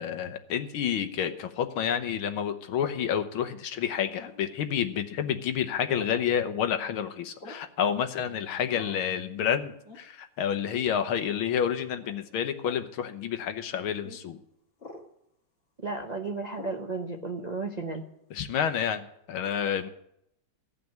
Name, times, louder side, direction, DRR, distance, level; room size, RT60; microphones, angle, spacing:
voice 1, 0.0-14.4 18.3-19.9, left 8 dB, 85° left, 8 dB, 1.8 m, -29 dB
sound 1, 4.2-4.5 6.0-6.3 7.4-7.7 8.7-9.1 9.8-10.1 10.7-10.9 12.0-12.2 12.6-12.9 14.0-14.2 14.8-15.1 16.6-16.8, left 3 dB, 30° left, 2.2 m, -46 dB
voice 2, 15.8-18.0, right 3 dB, 55° right, 2 dB, 0.4 m, -33 dB
16.0 x 5.9 x 9.2 m, 0.77 s
omnidirectional pair, 2.3 m